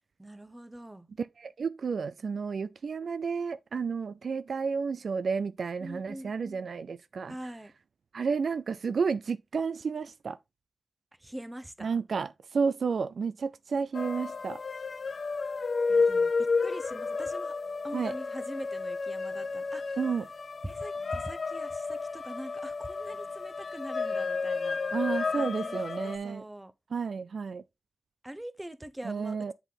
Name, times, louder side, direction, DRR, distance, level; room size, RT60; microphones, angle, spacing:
voice 1, 0.2-1.1 5.8-6.7 7.3-7.7 11.2-12.0 15.9-17.5 17.8-20.0 20.6-24.8 25.3-26.7 28.2-29.5, right 1 dB, 15° right, 0.9 m, -43 dB
voice 2, 1.2-7.3 8.1-10.4 11.8-14.6 17.9-18.1 20.0-20.3 24.9-26.4 26.9-27.6 29.0-29.5, right 5 dB, 75° right, 0.3 m, -31 dB
sound 1, 13.9-26.2, left 4 dB, 65° left, 0.4 m, -31 dB
8.0 x 3.7 x 4.0 m
cardioid pair, 50°, 0 cm